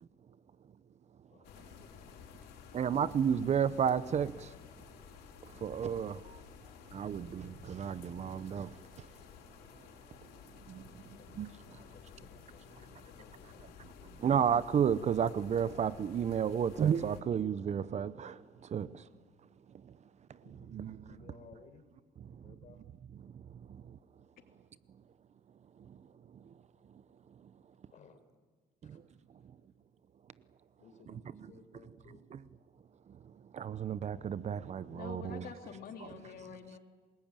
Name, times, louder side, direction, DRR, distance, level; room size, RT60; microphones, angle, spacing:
voice 1, 1.3-2.4 7.2-7.3 10.4-14.4 20.4-21.8 22.3-22.8 27.9-28.2 28.8-29.0 30.8-32.2, left 5 dB, 45° left, 4.3 m, -60 dB
sound 1, 1.4-17.2, left 7 dB, 85° left, 4.9 m, -54 dB
voice 2, 2.7-4.5 5.6-6.4 6.9-8.7 10.7-10.8 11.4-11.5 14.2-18.4 18.7-19.0 20.7-21.0 23.2-23.3 28.9-29.0 31.4-31.5 32.3-32.4 33.5-35.5, right 8 dB, 40° right, 0.8 m, -32 dB
voice 3, 34.9-36.8, left 7 dB, 60° left, 3.1 m, -47 dB
28.5 x 20.5 x 9.1 m
cardioid pair, 110°, 17 cm